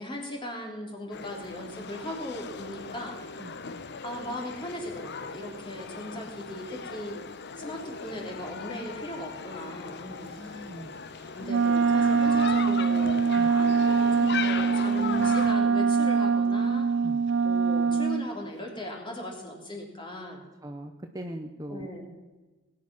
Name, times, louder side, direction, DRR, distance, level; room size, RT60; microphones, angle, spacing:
voice 1, 0.0-3.2 4.0-7.2 7.6-10.3 11.3-13.3 13.5-16.9 17.4-20.4 21.7-22.1, left 1 dB, 25° left, 0 dB, 3.2 m, -38 dB
sound 1, 1.1-15.5, left 5 dB, 55° left, 0.8 m, -38 dB
voice 2, 10.1-10.9 11.3-11.5 13.3-13.5 17.0-17.2 20.6-21.9, right 1 dB, 15° right, 4 dB, 0.8 m, -41 dB
Wind instrument woodwind instrument, 11.5-18.3, right 5 dB, 55° right, 0.4 m, -23 dB
19.5 x 9.7 x 6.1 m, 1.2 s
head